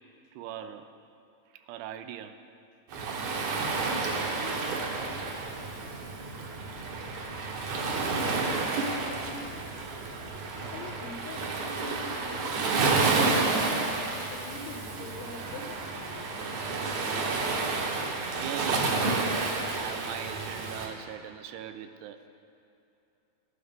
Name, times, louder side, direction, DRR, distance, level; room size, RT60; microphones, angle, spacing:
voice 1, 0.4-0.9 1.5-2.4 2.9-3.2 14.9-15.1 18.4-19.3 19.7-22.3, right 10 dB, 90° right, 9 dB, 2.6 m, -40 dB
Waves surf, 2.9-20.9, right 3 dB, 65° right, 1.8 m, -30 dB
voice 2, 7.9-8.6 9.3-9.7 10.7-12.6 14.2-16.3, left 4 dB, 85° left, 4 dB, 2.9 m, -44 dB
13.0 x 12.0 x 3.6 m, 2.8 s
omnidirectional pair, 4.7 m